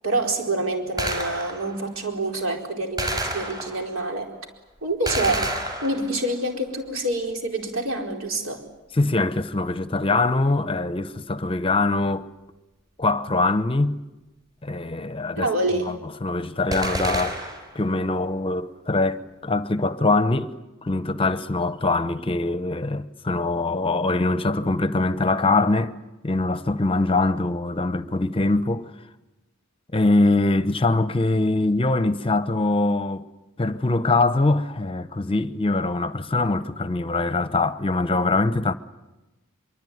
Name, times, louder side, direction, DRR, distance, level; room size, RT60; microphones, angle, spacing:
voice 1, 0.0-4.3 4.8-5.5 5.8-8.6 15.4-15.9, right 2 dB, 65° right, 4.5 m, -26 dB
Gunshot gunfire, 1.0-1.8 3.0-4.0 5.1-6.3 16.7-17.8, right 1 dB, 20° right, 4.9 m, -29 dB
voice 2, 8.9-12.3 13.0-14.0 14.6-15.5 15.9-17.4 17.7-20.5 20.8-25.9 26.2-28.9 29.9-33.2 33.6-38.7, left 2 dB, 25° left, 1.0 m, -23 dB
24.5 x 23.5 x 9.5 m
head